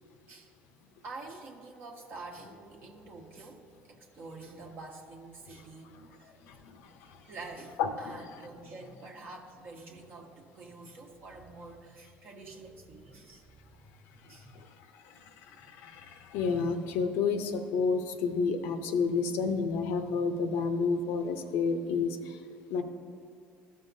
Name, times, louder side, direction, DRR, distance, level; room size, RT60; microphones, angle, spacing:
voice 1, 1.0-3.6 3.9-6.3 7.2-13.5 13.8-14.5, right 3 dB, 55° right, -1 dB, 1.0 m, -47 dB
voice 2, 6.4-7.3 7.8-7.9 14.2-22.4 22.7-22.8, left 5 dB, 80° left, 8 dB, 0.6 m, -31 dB
13.5 x 5.6 x 2.7 m, 2.5 s
supercardioid pair, 95°, 4 cm